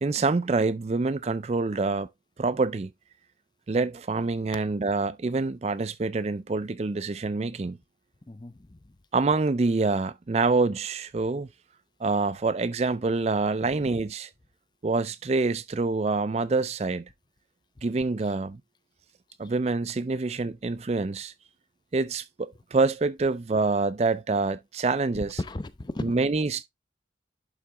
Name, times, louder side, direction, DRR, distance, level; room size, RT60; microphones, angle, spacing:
voice 1, 0.0-2.1 2.4-2.9 3.7-7.8 9.1-11.5 12.0-14.3 14.8-17.1 17.8-18.6 19.4-21.3 21.9-25.4 26.0-26.6, right 3 dB, 35° right, 0.4 m, -26 dB
voice 2, 8.3-8.8 25.2-26.1, left 2 dB, 25° left, 0.5 m, -35 dB
11.5 x 4.0 x 3.4 m
head